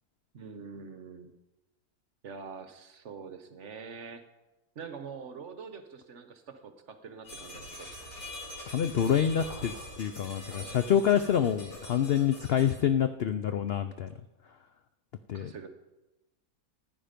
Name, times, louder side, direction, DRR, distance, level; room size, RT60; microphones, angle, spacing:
voice 1, 0.3-1.3 2.2-4.2 4.7-7.9 15.3-15.7, right 5 dB, 55° right, 9 dB, 1.1 m, -45 dB
sound 1, 7.2-12.7, left 1 dB, 55° left, 5.2 m, -44 dB
voice 2, 8.7-14.1 15.3-15.5, left 9 dB, 80° left, 10 dB, 0.5 m, -27 dB
14.5 x 9.7 x 5.1 m, 1.0 s
omnidirectional pair, 1.7 m